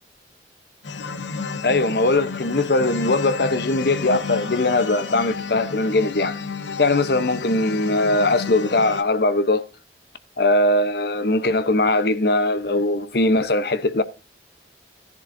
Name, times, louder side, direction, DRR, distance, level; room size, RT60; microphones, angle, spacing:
sound 1, 0.8-9.0, left 5 dB, 85° left, 1.0 m, -31 dB
voice 1, 1.6-6.4 6.8-9.6 10.4-14.0, left 2 dB, 60° left, 0.8 m, -20 dB
14.5 x 10.5 x 2.6 m
head